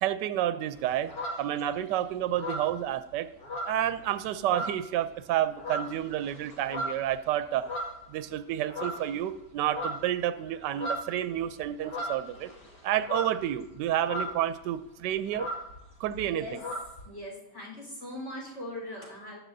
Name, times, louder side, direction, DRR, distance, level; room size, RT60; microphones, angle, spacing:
voice 1, 0.0-1.1 1.4-3.3 3.7-7.7 8.1-12.5 12.8-15.5 16.0-16.4, right 11 dB, 80° right, 12 dB, 1.2 m, -30 dB
sound 1, 0.7-1.9 2.3-4.1 4.4-5.0 5.4-8.3 8.7-9.2 9.5-14.6 14.8-14.9 15.1-17.0, equal, 60° left, 2.5 m, -37 dB
voice 2, 16.2-16.6 17.0-19.4, left 1 dB, 40° left, -2 dB, 4.5 m, -40 dB
15.0 x 11.0 x 2.7 m, 0.82 s
omnidirectional pair, 1.9 m